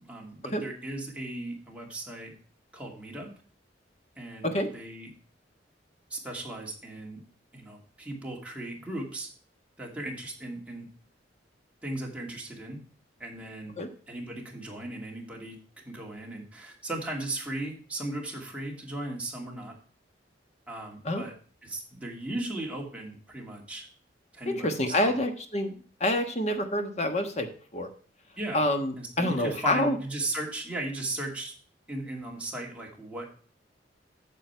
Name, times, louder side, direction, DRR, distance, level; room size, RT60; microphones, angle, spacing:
voice 1, 0.1-2.3 2.7-3.3 4.2-5.1 6.1-7.2 7.5-9.3 9.8-10.9 11.8-12.8 13.2-13.8 14.1-19.7 20.7-21.3 21.6-23.9 24.3-25.1 28.4-28.7 29.0-31.5 31.9-33.4, right 2 dB, 5° right, -2 dB, 2.4 m, -37 dB
voice 2, 24.5-25.7 26.0-27.9 28.5-30.0, left 1 dB, 40° left, 7 dB, 1.3 m, -27 dB
9.2 x 6.8 x 4.5 m, 0.44 s
head